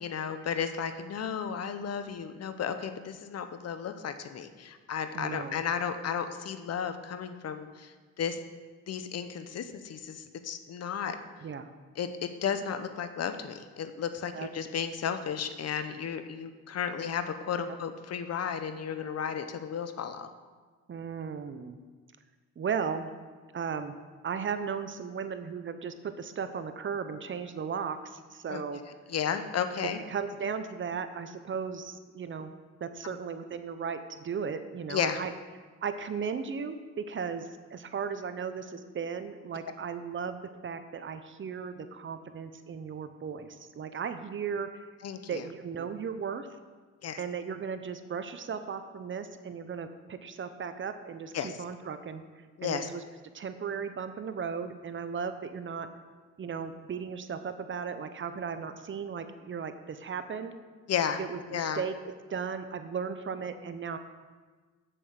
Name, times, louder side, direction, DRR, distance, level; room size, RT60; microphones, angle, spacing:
voice 1, 0.0-8.4 8.9-11.2 12.0-20.3 28.5-28.6 29.1-30.0 33.0-33.2 34.9-35.2 45.0-45.4 47.0-47.2 51.3-51.5 52.6-52.9 60.9-61.2 61.5-61.8, left 7 dB, 55° left, 9 dB, 0.9 m, -33 dB
voice 2, 5.1-5.5 11.4-11.7 14.3-14.5 17.7-17.8 20.9-21.8 22.6-23.1 23.5-23.9 24.2-28.8 30.1-32.5 32.8-35.3 35.8-44.8 45.3-46.5 47.2-52.2 52.6-53.0 53.3-55.9 56.4-60.5 61.2-61.9 62.3-64.0, right 6 dB, 40° right, 10 dB, 0.8 m, -36 dB
7.8 x 7.6 x 6.5 m, 1.4 s
cardioid pair, 90°, 30 cm